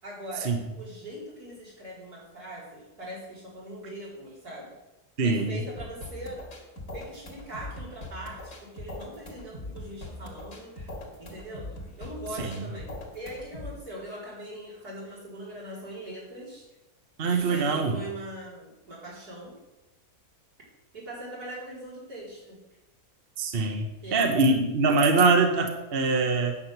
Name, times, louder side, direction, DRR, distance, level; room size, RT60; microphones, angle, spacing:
voice 1, 0.0-4.7 5.2-6.4 6.9-10.9 11.2-16.7 17.3-19.6 20.9-22.6 24.0-24.6, right 1 dB, 80° right, -6 dB, 4.7 m, -41 dB
voice 2, 5.2-5.6 12.4-12.6 17.2-18.0 23.4-26.6, right 3 dB, 40° right, 4 dB, 1.2 m, -23 dB
sound 1, 5.8-13.8, left 1 dB, 55° left, 2.5 m, -41 dB
9.6 x 6.4 x 7.9 m, 0.99 s
omnidirectional pair, 1.6 m